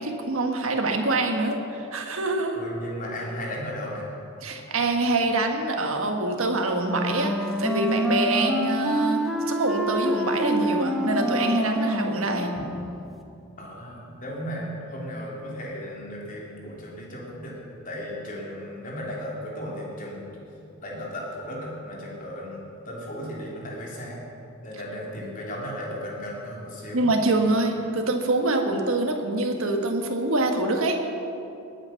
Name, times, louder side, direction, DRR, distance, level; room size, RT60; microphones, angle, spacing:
voice 1, 0.0-2.6 4.4-9.2 9.5-12.5 26.9-31.0, right 2 dB, 70° right, 3 dB, 1.6 m, -25 dB
voice 2, 2.5-4.1 13.6-17.6 17.8-22.6 22.8-24.2 24.6-27.1, equal, 40° left, -3 dB, 3.4 m, -35 dB
Wind instrument woodwind instrument, 6.8-13.0, right 1 dB, ahead, 1.1 m, -27 dB
20.5 x 9.0 x 5.9 m, 2.7 s
head